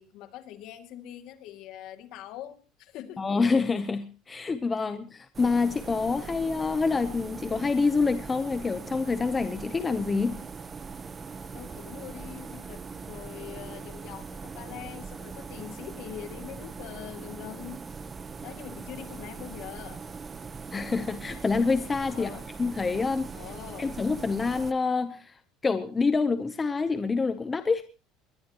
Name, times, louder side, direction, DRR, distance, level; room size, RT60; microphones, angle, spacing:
voice 1, 0.0-3.3 11.5-17.8 18.4-20.0 22.1-22.5 23.3-24.0, left 11 dB, 55° left, 7 dB, 2.3 m, -43 dB
voice 2, 3.2-10.4 20.7-22.3 22.6-23.3 23.8-25.3 25.6-27.8, left 4 dB, 15° left, 9 dB, 0.8 m, -27 dB
sound 1, 5.3-24.7, right 5 dB, 20° right, 0.9 m, -41 dB
21.5 x 20.0 x 3.0 m, 0.35 s
cardioid pair, 165°, 0 cm